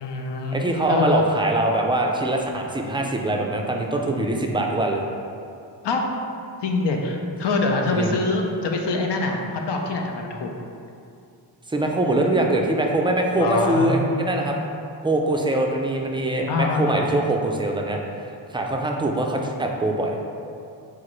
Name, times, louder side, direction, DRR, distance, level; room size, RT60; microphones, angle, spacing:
voice 1, 0.0-1.3 5.8-6.0 6.6-10.5 13.4-14.8 16.5-17.2, left 3 dB, 65° left, 2 dB, 0.6 m, -25 dB
voice 2, 0.5-5.0 7.9-8.2 11.7-14.6 15.0-18.0 18.5-20.2, right 1 dB, 10° right, 1 dB, 0.3 m, -23 dB
4.7 x 2.0 x 4.5 m, 2.5 s
cardioid pair, 80°, 44 cm